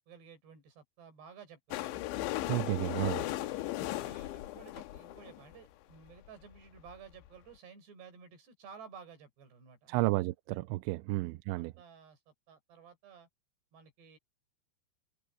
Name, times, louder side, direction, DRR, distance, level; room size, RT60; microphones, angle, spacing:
voice 1, 0.0-2.0 3.3-10.1 11.1-13.3 13.7-14.2, right 6 dB, 65° right, 7.7 m, -54 dB
sound 1, 1.7-5.6 6.3-6.4 6.5-6.6 6.8-6.9 7.3-7.4, left 16 dB, 80° left, 3.2 m, -37 dB
voice 2, 2.5-3.3 9.9-11.7, right 21 dB, 85° right, 2.9 m, -32 dB
omnidirectional pair, 5.3 m